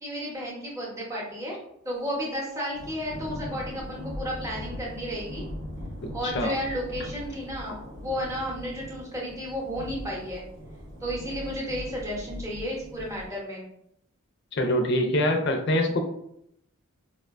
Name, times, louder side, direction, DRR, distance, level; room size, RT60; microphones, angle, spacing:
voice 1, 0.0-1.6 1.8-5.4 6.1-10.4 11.0-13.7, equal, 15° right, -4 dB, 0.8 m, -33 dB
Thunder / Rain, 2.7-13.3, equal, 55° right, 1.0 m, -40 dB
voice 2, 6.0-6.5 14.5-16.0, left 1 dB, 55° left, 4 dB, 0.4 m, -25 dB
4.5 x 2.2 x 2.4 m, 0.75 s
head